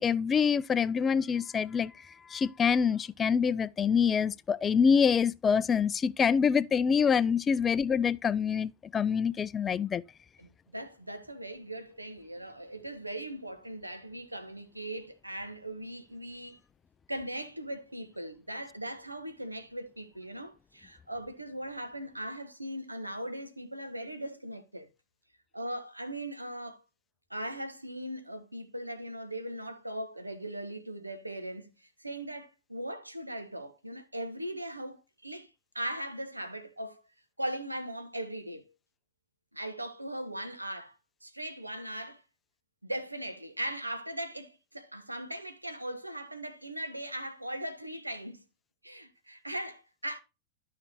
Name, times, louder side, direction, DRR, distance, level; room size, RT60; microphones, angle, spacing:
voice 1, 0.0-10.0, left 6 dB, 20° left, 0.3 m, -26 dB
voice 2, 10.4-16.6 17.1-24.9 25.5-26.8 27.3-31.7 32.0-35.5 35.7-37.0 37.4-38.7 39.5-42.2 42.8-48.4 48.8-50.2, right 1 dB, 85° right, 1.0 m, -39 dB
12.5 x 5.8 x 2.8 m
figure-of-eight pair, 90°, 0 cm